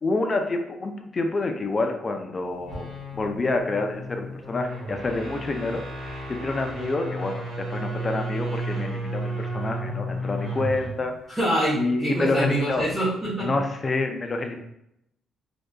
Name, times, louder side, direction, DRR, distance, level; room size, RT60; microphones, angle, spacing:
voice 1, 0.0-2.9 3.1-11.1 11.7-12.9 13.4-14.6, left 2 dB, 35° left, 5 dB, 0.4 m, -28 dB
sound 1, 2.5-11.0, right 1 dB, 75° right, 1.2 m, -33 dB
voice 2, 11.3-13.5, equal, 15° right, -10 dB, 0.8 m, -25 dB
2.6 x 2.2 x 2.2 m, 0.80 s
cardioid pair, 90°, 0 cm